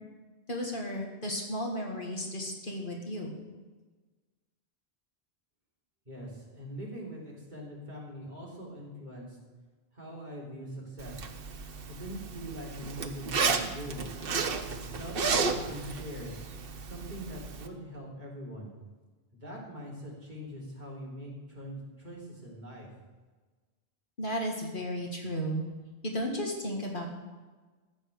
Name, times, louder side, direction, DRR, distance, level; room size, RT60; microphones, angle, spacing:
voice 1, 0.5-3.3 24.2-25.6 26.0-27.1, equal, 50° left, 0 dB, 2.2 m, -34 dB
voice 2, 6.1-9.4 9.9-11.3 11.9-14.1 14.8-16.4 16.8-18.7 19.3-22.9, equal, 45° right, -4 dB, 3.5 m, -42 dB
Zipper (clothing), 11.0-17.7, right 5 dB, 60° right, 1.1 m, -33 dB
14.0 x 6.3 x 8.1 m, 1.3 s
omnidirectional pair, 1.1 m